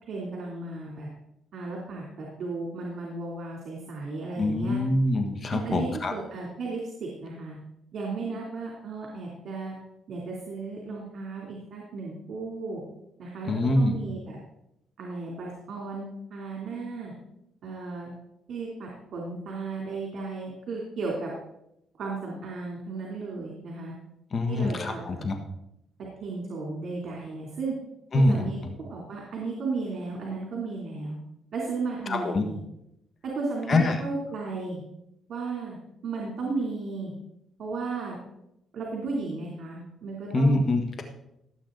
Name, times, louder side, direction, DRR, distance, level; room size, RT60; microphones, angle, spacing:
voice 1, 0.1-1.1 1.5-4.8 5.5-7.6 7.9-9.8 10.1-12.8 13.2-14.4 15.0-17.1 17.6-18.1 18.5-21.3 22.0-23.9 24.5-25.3 26.2-27.7 28.1-28.6 28.9-31.2 31.5-32.6 33.2-34.8 35.3-35.8 36.0-37.1 37.6-38.2 38.7-40.6, right 3 dB, 60° right, -2 dB, 3.1 m, -34 dB
voice 2, 4.4-6.1 13.5-14.0 24.3-25.3 28.1-28.4 32.1-32.4 33.7-33.9 40.3-41.0, left 2 dB, 45° left, 5 dB, 1.4 m, -24 dB
17.0 x 8.3 x 4.0 m, 0.83 s
cardioid pair, 90°, 0 cm